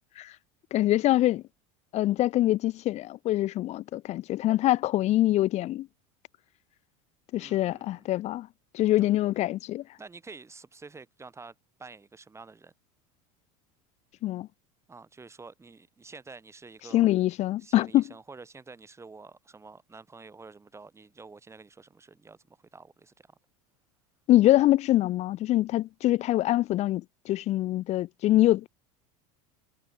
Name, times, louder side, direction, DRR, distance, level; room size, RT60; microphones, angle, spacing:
voice 1, 0.7-1.4 1.9-5.9 7.3-8.5 8.7-9.8 14.2-14.5 16.9-18.0 24.3-28.7, left 15 dB, 40° left, 0.5 m, -24 dB
voice 2, 7.3-8.0 9.0-9.2 10.0-12.7 14.9-17.1 17.6-23.1, right 4 dB, 15° right, 6.3 m, -48 dB
supercardioid pair, 110°, 17 cm